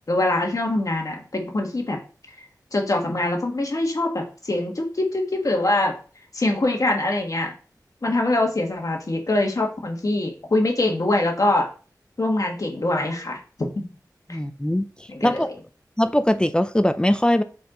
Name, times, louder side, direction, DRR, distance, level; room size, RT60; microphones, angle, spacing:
voice 1, 0.1-2.0 2.3-2.4 2.7-5.9 6.3-7.5 8.0-11.7 12.2-13.4 14.3-14.4 15.1-15.5, left 2 dB, 55° left, 1.6 m, -23 dB
voice 2, 14.3-14.9 15.2-15.5 16.0-17.4, left 1 dB, 15° left, 0.6 m, -20 dB
7.4 x 4.5 x 3.9 m
wide cardioid pair, 55°, 7 cm